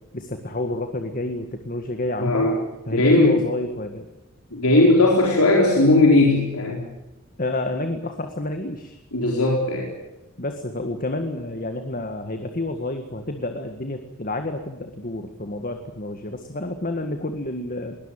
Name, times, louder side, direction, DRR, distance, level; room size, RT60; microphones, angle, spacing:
voice 1, 0.1-2.5 2.9-4.1 7.4-9.0 10.4-18.0, left 2 dB, 40° left, 6 dB, 1.8 m, -29 dB
voice 2, 2.2-2.6 2.9-3.4 4.5-6.8 9.1-9.9, left 2 dB, 90° left, -1 dB, 4.5 m, -17 dB
21.5 x 20.0 x 9.0 m, 1.0 s
head